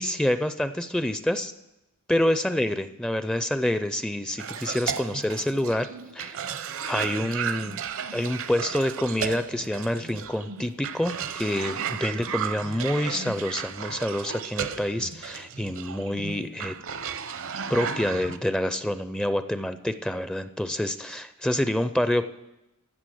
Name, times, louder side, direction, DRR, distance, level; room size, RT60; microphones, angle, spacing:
voice 1, 0.0-1.5 2.1-5.9 6.1-6.6 6.9-7.8 8.1-16.7 17.7-22.2, left 1 dB, 5° left, 11 dB, 0.4 m, -27 dB
Cough, 4.4-18.4, right 7 dB, 65° right, 0.7 m, -34 dB
14.5 x 6.6 x 7.7 m, 0.93 s
head